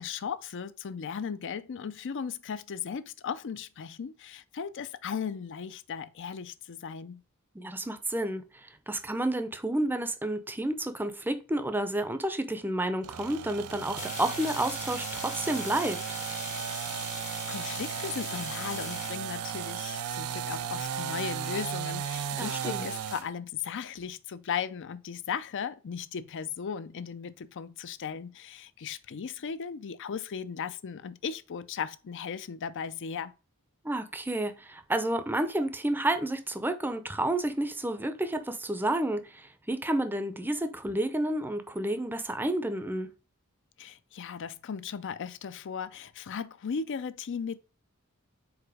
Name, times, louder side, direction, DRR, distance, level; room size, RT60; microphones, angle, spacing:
voice 1, 0.0-7.2 17.0-33.3 43.8-47.6, left 6 dB, 55° left, 0.5 m, -37 dB
voice 2, 7.5-8.4 8.9-16.0 22.4-22.9 33.8-43.1, right 1 dB, 10° right, 0.6 m, -30 dB
sound 1, 13.0-23.3, right 8 dB, 80° right, 0.5 m, -35 dB
sound 2, 14.0-19.1, left 6 dB, 35° left, 0.8 m, -41 dB
4.8 x 4.2 x 4.9 m
head